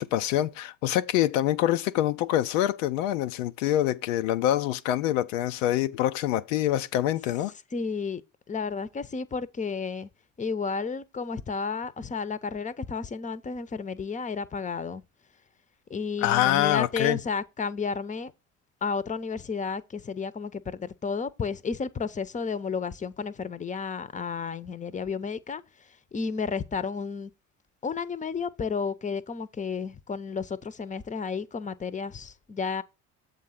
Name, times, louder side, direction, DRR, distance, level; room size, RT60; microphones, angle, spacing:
voice 1, 0.0-7.5 16.2-17.2, left 13 dB, 85° left, 0.5 m, -25 dB
voice 2, 7.7-8.2 8.5-10.1 10.4-15.0 15.9-18.3 18.8-25.6 26.1-27.3 27.8-32.8, left 5 dB, 20° left, 0.7 m, -32 dB
7.4 x 3.7 x 5.7 m
hypercardioid pair, 65°, 38 cm